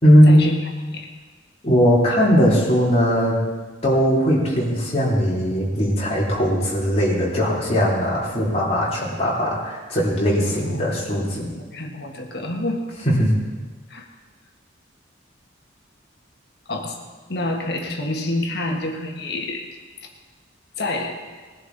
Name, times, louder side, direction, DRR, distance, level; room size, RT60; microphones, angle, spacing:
voice 1, 0.0-0.4 1.6-3.4 3.8-11.5 13.0-13.3, equal, 30° left, -5 dB, 3.3 m, -19 dB
voice 2, 11.6-12.8 13.9-14.1 16.7-17.0 17.3-19.6 20.8-21.2, left 2 dB, 55° left, 2 dB, 1.6 m, -27 dB
20.0 x 11.0 x 4.1 m, 1.4 s
head